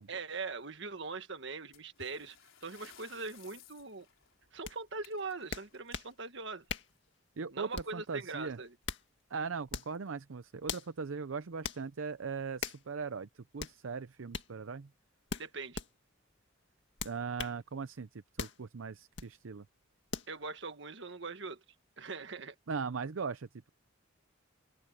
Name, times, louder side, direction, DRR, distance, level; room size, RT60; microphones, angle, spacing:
voice 1, 0.1-2.4 2.6-4.1 4.5-6.6 7.5-8.7 15.4-15.8 20.3-21.6 22.0-22.5, right 4 dB, 60° right, 1.7 m, -41 dB
sound 1, 1.7-7.1 8.4-8.5 8.8-8.9 9.6-9.7 10.4-10.6, left 7 dB, 75° left, 4.4 m, -59 dB
sound 2, 4.6-4.8 5.5-6.1 6.7-7.0 7.7-8.0 8.6-9.1 9.7-10.0 10.7-10.9 11.6-11.8 12.6-12.8 13.6-13.8 14.3-14.5 15.3-15.9 17.0-17.6 18.4-18.6 19.1-19.3 20.1-20.3, left 5 dB, 60° left, 2.0 m, -40 dB
voice 2, 7.4-8.6 9.3-14.9 17.0-19.7 22.7-23.7, right 5 dB, 80° right, 0.6 m, -39 dB
open air
head